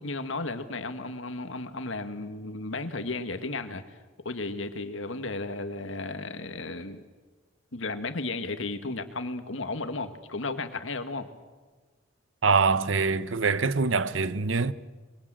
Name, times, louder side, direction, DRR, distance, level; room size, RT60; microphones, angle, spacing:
voice 1, 0.0-3.8 4.2-7.0 7.7-11.3, left 3 dB, 80° left, 1.9 m, -34 dB
voice 2, 12.4-14.7, right 4 dB, 75° right, 0.9 m, -24 dB
25.0 x 23.0 x 7.7 m
head